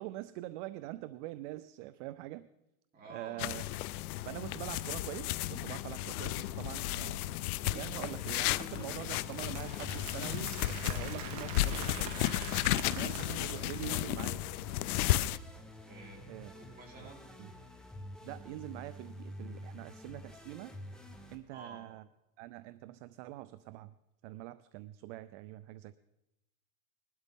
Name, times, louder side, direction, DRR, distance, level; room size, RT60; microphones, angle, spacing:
voice 1, 0.0-2.5 3.1-3.6 4.3-7.4 7.7-12.2 12.8-14.5 16.3-16.5 16.9-17.1 17.4-17.5 18.2-20.8 21.3-22.0 22.4-23.9 24.2-25.9, right 16 dB, 55° right, 14 dB, 0.5 m, -44 dB
voice 2, 2.9-3.4 15.8-17.2 21.5-21.9, right 3 dB, 20° right, -2 dB, 3.5 m, -51 dB
sound 1, 3.4-15.4, left 15 dB, 90° left, 0.6 m, -34 dB
sound 2, 7.6-21.4, left 1 dB, ahead, 0.9 m, -49 dB
Applause, 8.5-14.3, right 8 dB, 40° right, 1.3 m, -46 dB
20.0 x 12.0 x 3.6 m, 0.90 s
supercardioid pair, 155°, 43 cm